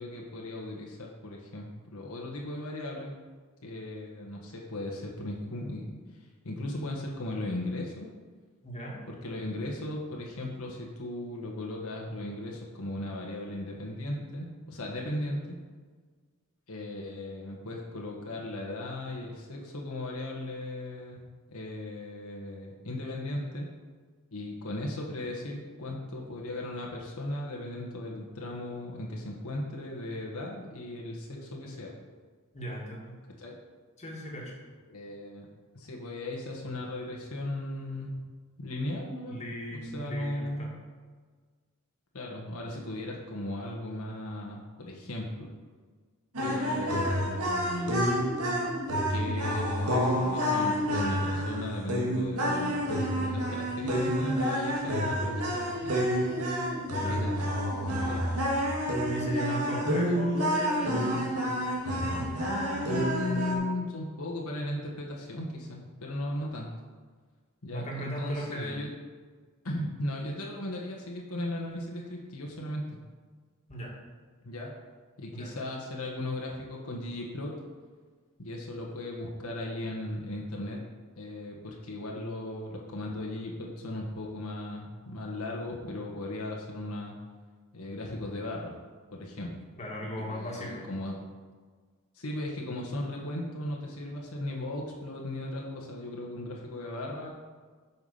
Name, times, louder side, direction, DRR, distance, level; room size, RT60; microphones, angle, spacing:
voice 1, 0.0-3.1 3.6-6.0 6.4-8.1 9.1-15.5 16.7-23.7 24.3-31.9 33.4-33.5 34.9-35.5 35.7-38.2 38.6-39.4 39.8-40.7 42.1-45.5 46.4-48.1 49.1-56.1 57.0-57.4 57.8-58.3 60.1-60.2 62.9-66.7 67.6-68.9 69.6-72.8 74.4-74.7 75.2-77.5 78.4-80.8 81.2-87.1 87.7-88.7 89.2-89.5 90.2-91.2 92.1-97.3, left 1 dB, 75° left, -1 dB, 1.4 m, -37 dB
voice 2, 8.6-9.0 32.5-33.2 34.0-34.5 39.2-40.7 57.0-57.3 59.1-61.3 62.0-62.3 67.7-68.8 73.7-74.0 75.3-75.5 89.8-90.9, equal, 30° left, -3 dB, 2.0 m, -38 dB
sound 1, 46.3-63.5, equal, 85° right, 1.9 m, -29 dB
8.3 x 6.0 x 5.5 m, 1.5 s
head